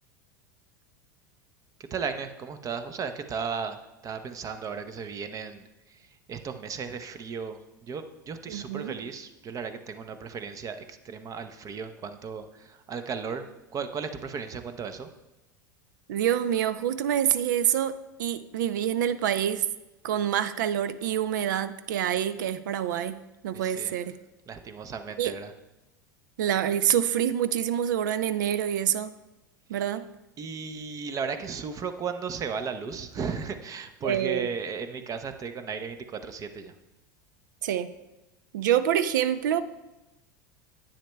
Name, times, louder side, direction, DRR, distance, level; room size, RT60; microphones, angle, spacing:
voice 1, 1.9-15.1 23.5-23.9 24.5-25.5 29.7-29.8 30.4-36.7, right 5 dB, 30° right, 9 dB, 0.7 m, -35 dB
voice 2, 8.5-8.9 16.1-19.7 20.0-23.2 23.4-24.2 25.2-25.4 26.4-29.1 29.7-30.1 34.0-34.5 37.6-37.9 38.5-39.6, right 10 dB, 70° right, 14 dB, 0.4 m, -26 dB
10.0 x 8.6 x 2.3 m, 1.0 s
hypercardioid pair, 85°, 10 cm